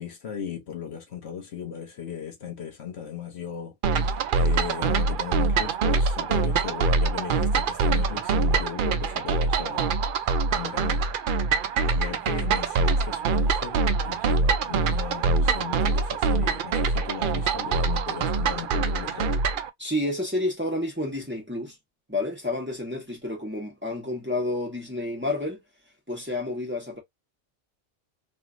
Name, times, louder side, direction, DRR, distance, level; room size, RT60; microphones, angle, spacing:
voice 1, 0.0-11.1 11.4-19.4, left 8 dB, 65° left, 1.1 m, -37 dB
sound 1, 3.8-19.7, right 4 dB, 60° right, 0.6 m, -24 dB
voice 2, 19.8-21.8 22.1-25.6 26.1-27.0, left 1 dB, 10° right, 1.3 m, -30 dB
3.0 x 2.7 x 2.4 m
omnidirectional pair, 1.2 m